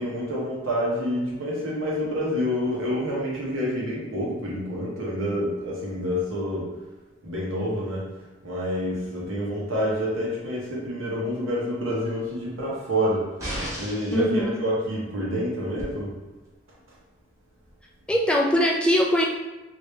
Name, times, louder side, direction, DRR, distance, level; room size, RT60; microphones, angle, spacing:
voice 1, 0.0-6.7 7.2-8.0 8.4-13.2 13.8-16.1, equal, 75° right, -5 dB, 1.0 m, -27 dB
sound 1, 13.4-14.2 15.8-15.9, equal, 15° right, 0.9 m, -33 dB
voice 2, 14.1-14.6 18.1-19.3, equal, 5° left, -1 dB, 0.3 m, -21 dB
3.3 x 2.7 x 3.2 m, 1.1 s
head